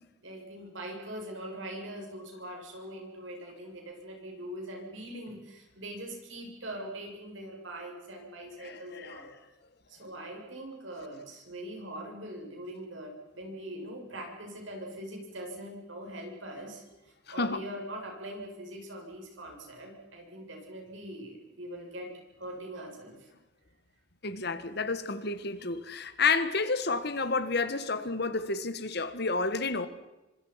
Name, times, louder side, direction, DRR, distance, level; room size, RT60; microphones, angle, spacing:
voice 1, 0.2-9.3 9.9-23.3, right 1 dB, 75° right, 7.7 m, -42 dB
voice 2, 8.6-9.3 17.4-17.6 24.2-29.9, left 4 dB, 55° left, 1.7 m, -30 dB
28.5 x 25.5 x 5.9 m
head